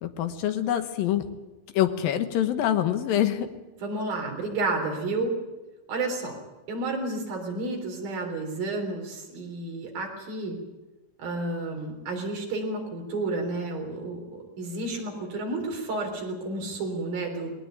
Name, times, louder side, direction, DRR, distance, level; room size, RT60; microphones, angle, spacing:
voice 1, 0.0-1.3 1.7-3.5, left 11 dB, 85° left, 8 dB, 3.1 m, -25 dB
voice 2, 3.8-5.4 5.9-6.4 6.7-10.6 11.2-17.5, right 2 dB, 90° right, 1 dB, 5.5 m, -31 dB
20.0 x 19.0 x 9.1 m, 1.1 s
omnidirectional pair, 4.0 m